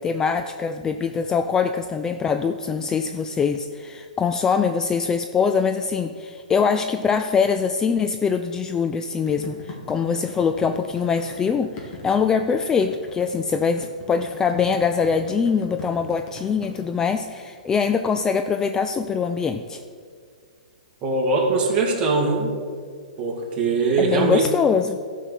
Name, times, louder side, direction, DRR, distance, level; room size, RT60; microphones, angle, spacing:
voice 1, 0.0-19.8 24.0-25.0, left 6 dB, 15° left, 8 dB, 0.3 m, -23 dB
sound 1, 9.3-16.8, left 4 dB, 35° left, 2.3 m, -40 dB
voice 2, 21.0-22.5 23.2-24.5, right 3 dB, 25° right, 0 dB, 2.1 m, -21 dB
13.0 x 5.4 x 6.4 m, 2.1 s
hypercardioid pair, 140°, 4 cm